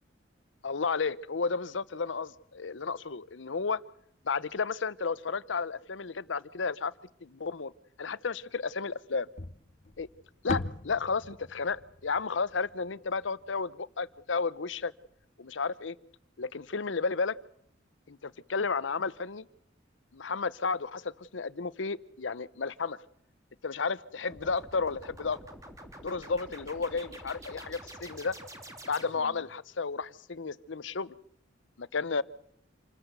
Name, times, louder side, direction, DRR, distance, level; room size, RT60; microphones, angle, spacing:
voice 1, 0.6-3.8 4.2-6.9 7.2-7.7 8.0-9.3 10.0-10.1 10.4-14.9 15.4-16.0 16.4-17.4 18.1-19.5 20.1-23.0 23.6-25.4 26.0-28.4 28.9-31.2 31.8-32.2, left 4 dB, 85° left, 18 dB, 0.8 m, -32 dB
sound 1, 9.4-13.7, left 2 dB, 40° left, 0.8 m, -39 dB
sound 2, 24.3-29.5, right 1 dB, 20° right, 2.9 m, -47 dB
27.5 x 14.0 x 8.0 m, 0.69 s
head